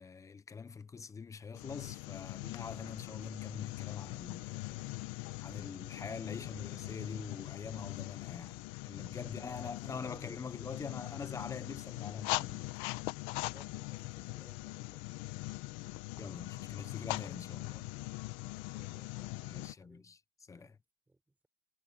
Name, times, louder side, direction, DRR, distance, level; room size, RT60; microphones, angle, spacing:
voice 1, 0.0-12.7 16.2-17.9 19.4-20.2 20.5-20.7, left 5 dB, 10° left, 0.9 m, -45 dB
sound 1, 1.5-19.7, left 22 dB, 40° left, 1.5 m, -41 dB
voice 2, 9.2-10.4 13.4-15.0 17.4-17.5 18.4-20.1 20.5-20.8 21.1-21.5, right 2 dB, 5° right, 6.6 m, -61 dB
supercardioid pair, 145°, 30 cm